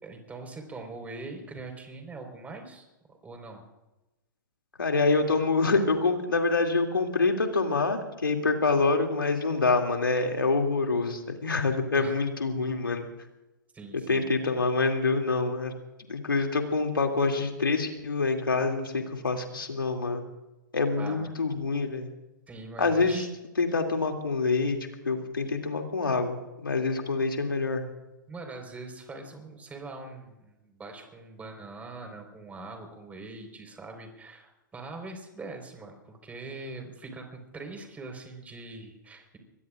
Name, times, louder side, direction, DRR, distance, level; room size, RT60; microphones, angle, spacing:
voice 1, 0.0-2.9 3.2-3.6 12.0-12.1 13.7-14.3 20.9-21.3 22.5-23.3 28.3-39.4, right 3 dB, 15° right, 4 dB, 4.6 m, -42 dB
voice 2, 4.8-13.1 14.1-15.7 16.1-20.2 20.7-22.1 22.8-23.3 23.6-24.8 25.0-27.8, left 3 dB, 90° left, 3 dB, 2.7 m, -26 dB
24.5 x 21.5 x 2.5 m, 1.0 s
hypercardioid pair, 120°, 11 cm